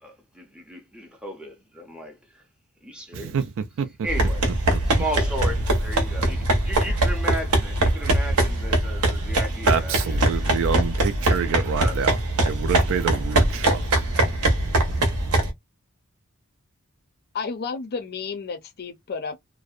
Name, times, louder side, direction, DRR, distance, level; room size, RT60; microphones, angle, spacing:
voice 1, 0.0-2.4 2.8-3.4 4.0-4.4 4.9-10.2 11.7-12.1, equal, 5° right, 0.5 m, -35 dB
voice 2, 3.1-3.9 9.7-12.2 12.4-14.1, right 7 dB, 60° right, 0.3 m, -27 dB
sound 1, 4.1-15.5, right 1 dB, 80° right, 0.8 m, -22 dB
voice 3, 17.3-19.4, left 5 dB, 45° left, 0.5 m, -31 dB
2.5 x 2.1 x 2.4 m
head